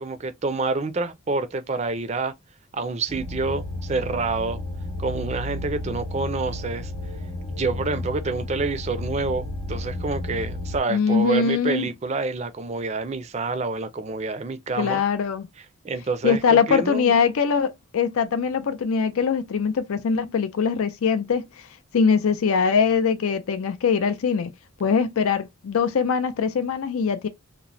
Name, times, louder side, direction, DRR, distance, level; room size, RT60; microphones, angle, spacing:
voice 1, 0.0-2.3 2.7-4.6 5.0-6.9 7.5-15.0 15.8-17.1, right 3 dB, 30° right, 0.4 m, -27 dB
sound 1, 3.1-10.8, left 1 dB, 25° left, 0.8 m, -32 dB
voice 2, 10.9-11.9 14.8-15.5 16.2-21.5 21.9-24.5 24.8-27.3, left 6 dB, 85° left, 0.4 m, -22 dB
3.0 x 2.1 x 2.5 m
head